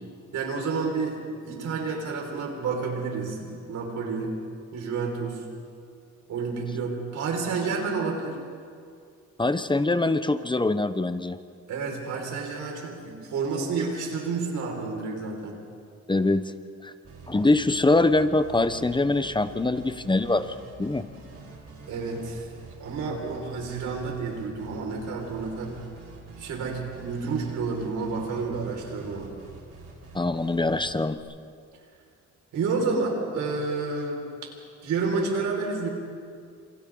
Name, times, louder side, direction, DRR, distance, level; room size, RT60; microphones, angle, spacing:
voice 1, 0.3-4.3 4.7-5.4 6.3-8.4 11.7-15.6 21.9-22.5 22.8-25.9 26.4-29.3 32.5-34.2 34.8-35.9, right 4 dB, 75° right, 0 dB, 5.4 m, -30 dB
voice 2, 9.4-11.4 16.1-16.4 16.8-16.9 17.3-21.1 30.1-31.2 35.2-35.3, left 2 dB, 15° left, 11 dB, 0.9 m, -23 dB
sound 1, 17.0-31.2, right 2 dB, 50° right, 5.4 m, -46 dB
28.5 x 27.0 x 3.9 m, 2.3 s
cardioid pair, 90°, 30 cm